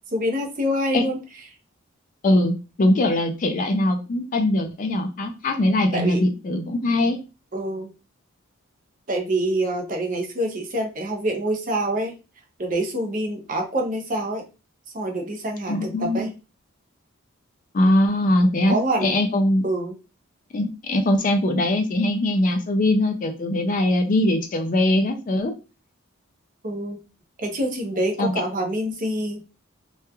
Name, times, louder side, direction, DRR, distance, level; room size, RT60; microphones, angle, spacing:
voice 1, 0.1-1.2 5.9-6.2 7.5-7.9 9.1-12.1 12.6-14.4 14.9-16.3 18.7-19.1 19.6-20.0 26.6-27.0 27.4-29.4, right 1 dB, 40° right, 2 dB, 0.5 m, -26 dB
voice 2, 2.2-7.2 15.7-16.3 17.7-19.6 20.5-25.5 28.2-28.3, left 1 dB, 40° left, 5 dB, 0.3 m, -21 dB
2.9 x 2.3 x 2.2 m, 0.30 s
head